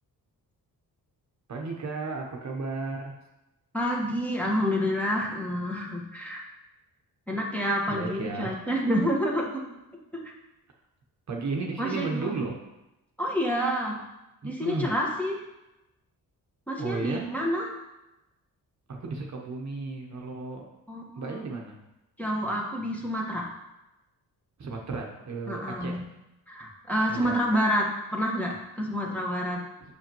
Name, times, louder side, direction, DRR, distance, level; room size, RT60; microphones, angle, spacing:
voice 1, 1.5-3.2 7.9-8.6 11.3-12.5 14.4-14.9 16.8-17.3 18.9-20.7 21.1-21.8 24.6-26.0 27.1-27.4, right 3 dB, 45° right, 0 dB, 1.0 m, -34 dB
voice 2, 3.7-6.4 7.3-9.5 10.1-10.2 11.8-12.3 13.2-14.0 14.4-15.4 16.7-17.7 20.9-21.4 22.2-23.5 25.5-26.0 26.5-29.6, equal, 5° left, -2 dB, 1.4 m, -28 dB
7.7 x 6.1 x 3.0 m, 0.95 s
cardioid pair, 105°, 38 cm